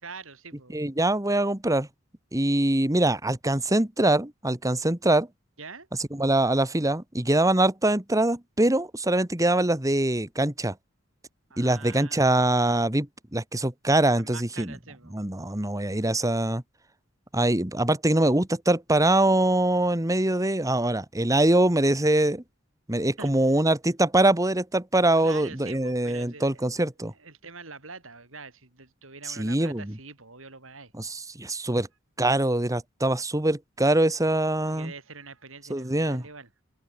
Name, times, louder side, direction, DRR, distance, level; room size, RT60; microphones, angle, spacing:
voice 1, 0.0-0.8 5.6-5.9 11.5-12.3 14.2-15.2 23.2-23.6 25.2-26.6 27.2-30.9 34.7-36.6, right 4 dB, 85° right, 5.8 m, -44 dB
voice 2, 0.7-1.9 2.3-5.3 6.1-10.7 11.6-14.7 15.1-16.6 17.3-22.4 22.9-27.1 29.3-30.0 31.0-31.9 32.2-34.9 35.7-36.2, right 1 dB, 15° right, 1.8 m, -23 dB
head